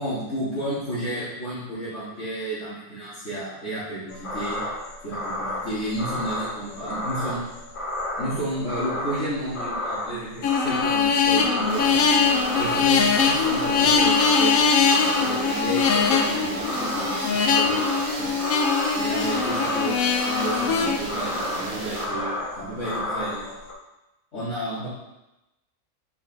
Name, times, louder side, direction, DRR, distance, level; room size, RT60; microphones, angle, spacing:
voice 1, 0.0-4.6 5.0-7.5 8.2-11.9 12.5-18.3 19.0-23.5 24.3-24.9, right 1 dB, 60° left, -12 dB, 2.1 m, -32 dB
sound 1, 4.1-23.7, left 1 dB, 35° left, 0.6 m, -32 dB
sound 2, 10.4-21.0, left 5 dB, 85° left, 1.1 m, -22 dB
sound 3, 11.7-22.1, right 1 dB, 35° right, 1.1 m, -33 dB
5.4 x 4.7 x 3.9 m, 0.95 s
omnidirectional pair, 1.4 m